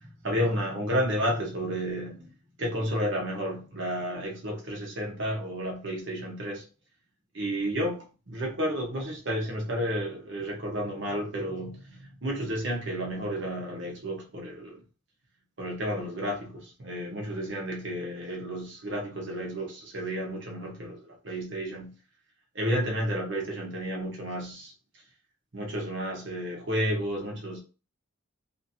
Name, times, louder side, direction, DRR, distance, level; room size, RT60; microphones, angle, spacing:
voice 1, 0.0-2.3 2.6-6.6 7.3-14.8 15.6-21.9 22.5-24.7 25.5-27.6, equal, 60° right, 0.9 m, -31 dB
2.9 x 2.5 x 2.7 m
head